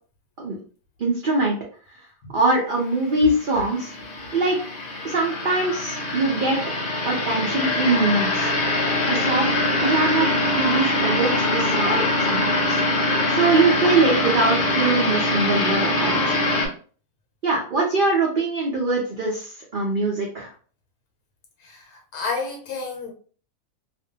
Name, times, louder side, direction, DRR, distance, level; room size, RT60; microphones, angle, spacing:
voice 1, 1.0-1.6 2.3-4.0 4.3-4.6 5.0-6.6 7.0-8.5 9.1-9.5 9.8-10.3 10.6-12.8 13.3-16.4 17.4-20.5, right 3 dB, 80° right, 0.4 m, -22 dB
sound 1, 3.1-16.7, left 2 dB, 55° left, 0.6 m, -23 dB
sound 2, 9.8-10.1 11.9-12.2 13.8-14.1 15.8-16.1, right 3 dB, 60° right, 0.8 m, -37 dB
voice 2, 21.6-23.1, left 4 dB, 80° left, 1.1 m, -31 dB
2.5 x 2.1 x 2.7 m
omnidirectional pair, 1.6 m